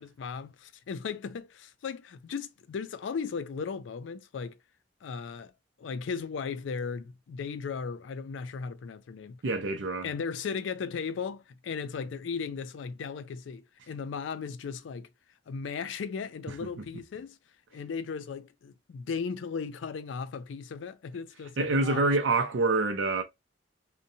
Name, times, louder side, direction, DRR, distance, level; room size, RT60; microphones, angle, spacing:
voice 1, 0.0-4.6 5.0-5.5 5.8-9.4 10.0-15.1 15.5-17.4 17.7-22.0, left 5 dB, 85° left, 0.4 m, -36 dB
voice 2, 9.4-10.1 16.8-16.9 21.6-23.2, right 3 dB, 80° right, 0.5 m, -26 dB
2.6 x 2.1 x 2.6 m
head